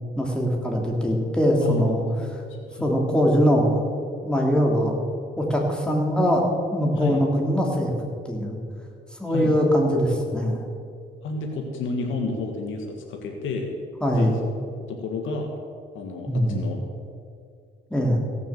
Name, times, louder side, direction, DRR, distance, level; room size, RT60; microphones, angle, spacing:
voice 1, 0.2-2.0 2.8-3.8 4.2-5.0 5.4-6.4 6.7-7.9 8.2-8.6 9.2-10.6 14.0-14.4 16.3-16.6 17.9-18.2, equal, 5° left, -1 dB, 2.9 m, -22 dB
voice 2, 11.2-13.7 14.1-14.3 14.8-15.5 15.9-16.8, left 3 dB, 80° left, 2 dB, 1.6 m, -30 dB
16.5 x 7.1 x 7.4 m, 2.4 s
cardioid pair, 90°, 20 cm